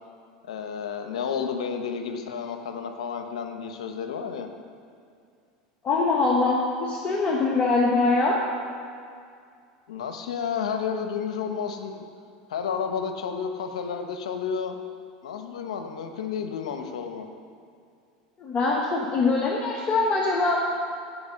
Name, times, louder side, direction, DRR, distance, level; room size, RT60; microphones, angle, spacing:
voice 1, 0.4-4.5 9.9-12.1 12.5-14.8 15.2-17.3, left 6 dB, 90° left, 6 dB, 0.9 m, -31 dB
voice 2, 5.8-8.4 18.4-20.6, left 3 dB, 35° left, -1 dB, 1.3 m, -23 dB
15.5 x 5.1 x 6.6 m, 2.3 s
supercardioid pair, 110°, 3 cm